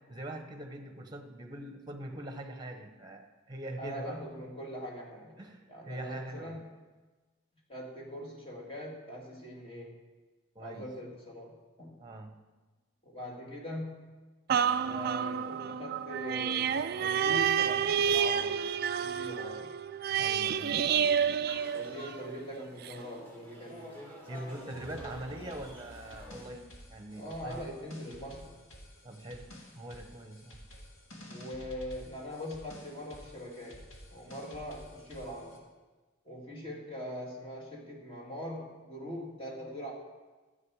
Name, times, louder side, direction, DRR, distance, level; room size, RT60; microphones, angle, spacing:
voice 1, 0.1-4.2 5.4-6.6 10.5-10.9 12.0-12.3 20.2-21.1 24.3-27.7 29.0-29.5 29.7-30.6, right 1 dB, 20° right, 5 dB, 1.1 m, -43 dB
voice 2, 3.8-5.4 5.7-6.7 7.7-10.0 10.6-12.0 13.0-14.1 14.8-18.7 19.0-19.7 21.7-24.0 27.2-28.6 31.3-33.9 34.1-35.6 36.2-39.9, equal, 25° left, -2 dB, 2.1 m, -42 dB
sound 1, 14.5-22.3 22.9-23.0, right 8 dB, 50° right, 0.3 m, -29 dB
sound 2, 21.5-26.5, equal, 10° left, 1.8 m, -49 dB
sound 3, 24.5-35.6, equal, 80° left, 2.1 m, -51 dB
13.5 x 7.9 x 4.9 m, 1.3 s
head